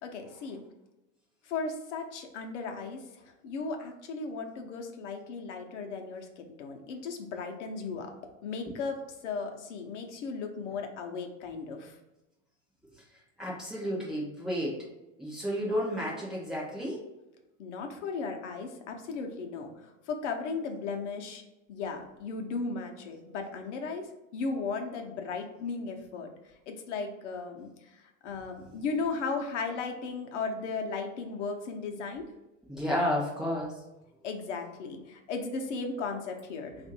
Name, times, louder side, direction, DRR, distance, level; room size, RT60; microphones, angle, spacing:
voice 1, 0.0-0.6 1.4-12.0 17.6-21.4 21.7-32.3 34.2-36.7, left 4 dB, 65° left, 4 dB, 0.8 m, -36 dB
voice 2, 13.0-14.9 15.2-17.0 32.7-33.8, equal, ahead, -6 dB, 0.6 m, -32 dB
3.5 x 2.5 x 4.2 m, 0.99 s
supercardioid pair, 165°, 39 cm